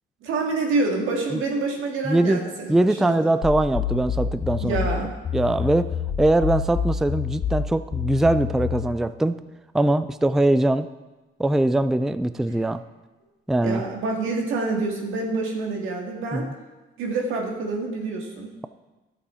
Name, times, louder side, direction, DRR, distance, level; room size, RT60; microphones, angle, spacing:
voice 1, 0.2-3.3 4.6-5.1 13.6-16.5 17.0-18.5, right 3 dB, 90° right, 1 dB, 1.9 m, -27 dB
voice 2, 2.0-2.4 2.7-4.8 5.3-5.9 6.2-9.4 9.7-10.9 11.4-12.8 13.5-13.9 16.3-16.5, right 1 dB, ahead, 13 dB, 0.3 m, -21 dB
sound 1, 3.4-8.9, left 7 dB, 60° left, 2.6 m, -27 dB
11.5 x 7.1 x 4.3 m, 1.1 s
cardioid pair, 90°, 20 cm